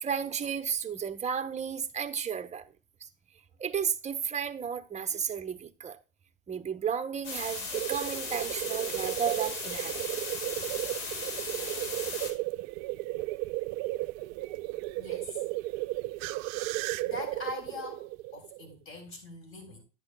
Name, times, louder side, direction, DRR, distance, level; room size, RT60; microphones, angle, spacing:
voice 1, 0.0-2.7 3.6-6.0 6.5-10.2, right 7 dB, 20° right, 0.9 m, -33 dB
sound 1, 7.2-12.3, left 3 dB, 60° left, 3.7 m, -37 dB
sound 2, 7.7-18.7, right 19 dB, 50° right, 0.5 m, -34 dB
voice 2, 15.0-15.4 17.0-19.8, left 3 dB, 35° left, 4.1 m, -42 dB
10.5 x 9.2 x 2.2 m
hypercardioid pair, 90°, 39 cm